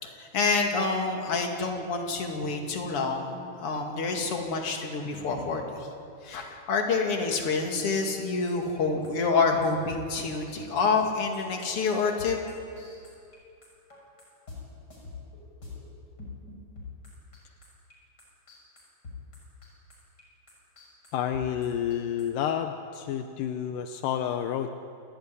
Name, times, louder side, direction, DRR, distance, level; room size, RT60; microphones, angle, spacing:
voice 1, 0.0-5.9 6.2-12.4, left 4 dB, 45° left, 2 dB, 3.1 m, -27 dB
sound 1, 8.2-13.4 13.6-14.6 14.9-15.8 16.2-17.9 18.2-22.5, left 4 dB, 30° left, 7.1 m, -45 dB
voice 2, 21.1-24.8, left 9 dB, 80° left, 7 dB, 2.4 m, -30 dB
28.5 x 14.5 x 9.7 m, 2.5 s
omnidirectional pair, 3.8 m